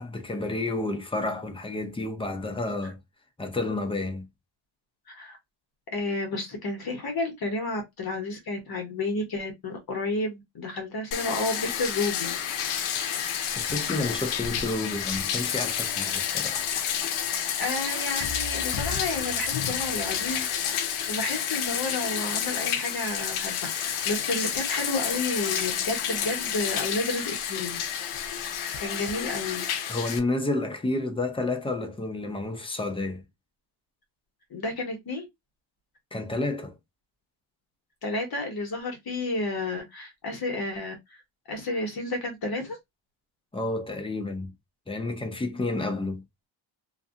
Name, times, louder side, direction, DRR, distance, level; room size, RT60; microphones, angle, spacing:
voice 1, 0.0-3.0 3.4-4.3 13.6-16.7 29.9-33.2 36.1-36.7 43.5-44.5 44.9-46.2, left 2 dB, 10° left, 0.5 m, -30 dB
voice 2, 5.1-5.4 5.9-12.4 17.6-20.8 21.0-27.8 28.8-29.7 34.5-35.3 38.0-40.9 41.5-42.8, left 2 dB, 45° left, 1.1 m, -31 dB
Bathtub (filling or washing), 11.1-30.2, left 9 dB, 80° left, 0.7 m, -30 dB
2.6 x 2.5 x 2.4 m
cardioid pair, 110°, 49 cm